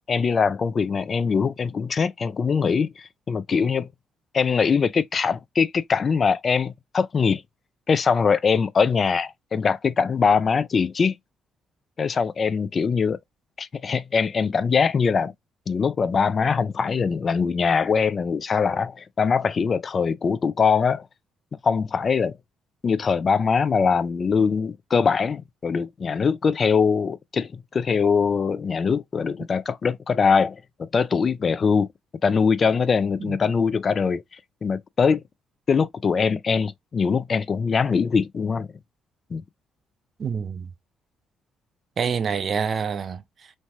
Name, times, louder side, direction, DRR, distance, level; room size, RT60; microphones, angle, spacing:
voice 1, 0.1-3.9 4.3-7.4 7.9-11.2 12.0-13.2 13.6-15.3 15.7-21.1 21.6-22.4 22.8-31.9 32.2-35.2 35.7-38.7 39.3-39.4, left 5 dB, 45° left, 0.4 m, -22 dB
voice 2, 40.2-40.7 42.0-43.5, right 6 dB, 50° right, 0.5 m, -27 dB
3.2 x 2.1 x 2.8 m
hypercardioid pair, 55°, 0 cm